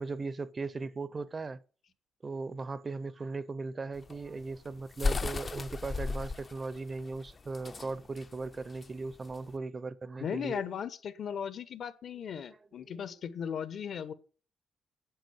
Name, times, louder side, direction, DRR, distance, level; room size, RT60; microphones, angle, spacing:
voice 1, 0.0-1.6 2.2-10.6, right 3 dB, 35° right, 0.7 m, -38 dB
sound 1, 4.0-9.5, left 3 dB, 35° left, 0.6 m, -35 dB
voice 2, 10.2-14.1, left 8 dB, 65° left, 1.1 m, -37 dB
9.2 x 7.7 x 8.1 m
cardioid pair, 85°, 0 cm